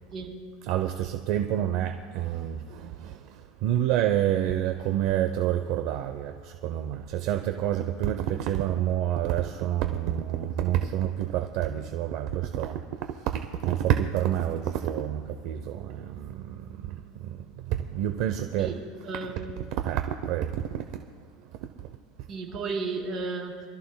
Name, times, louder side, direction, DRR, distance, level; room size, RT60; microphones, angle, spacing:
voice 1, 0.6-18.8 19.8-21.0 21.6-21.9, right 11 dB, 50° right, 0.6 m, -28 dB
voice 2, 19.0-19.4 22.3-23.7, right 4 dB, 30° right, 3.6 m, -33 dB
27.0 x 13.5 x 2.2 m
supercardioid pair, 155°, 0 cm